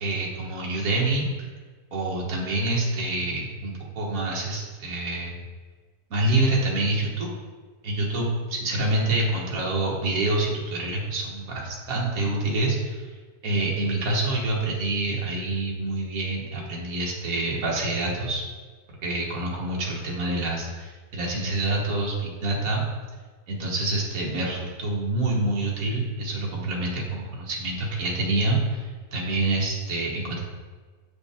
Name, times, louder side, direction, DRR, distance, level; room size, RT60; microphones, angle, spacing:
voice 1, 0.0-1.5 1.9-5.4 6.1-7.3 7.8-13.1 13.4-18.4 19.0-22.8 23.5-30.4, right 2 dB, 65° right, -3 dB, 1.7 m, -27 dB
8.2 x 5.2 x 3.5 m, 1.4 s
omnidirectional pair, 1.6 m